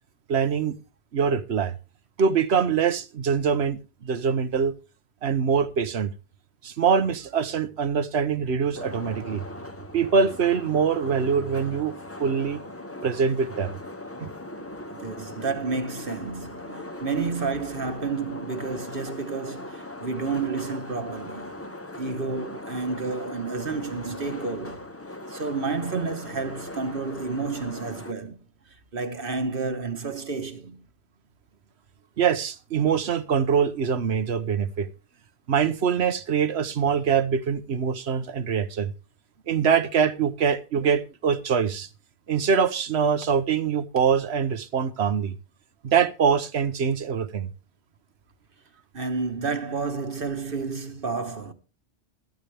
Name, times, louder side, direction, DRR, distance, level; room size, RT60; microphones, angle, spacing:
voice 1, 0.3-0.8 1.1-1.7 2.2-4.7 5.2-6.1 6.6-9.4 9.9-11.9 12.2-12.6 13.0-13.8 14.2-14.3 32.2-34.9 35.5-38.9 39.5-41.9 42.3-45.3 45.8-47.5, right 6 dB, 75° right, 1.2 m, -24 dB
sound 1, 8.7-28.1, left 2 dB, 15° left, 0.8 m, -39 dB
voice 2, 14.6-21.6 22.0-24.9 25.3-28.5 28.9-30.8 48.9-51.5, right 4 dB, 55° right, 1.5 m, -30 dB
13.5 x 13.0 x 3.4 m
omnidirectional pair, 1.1 m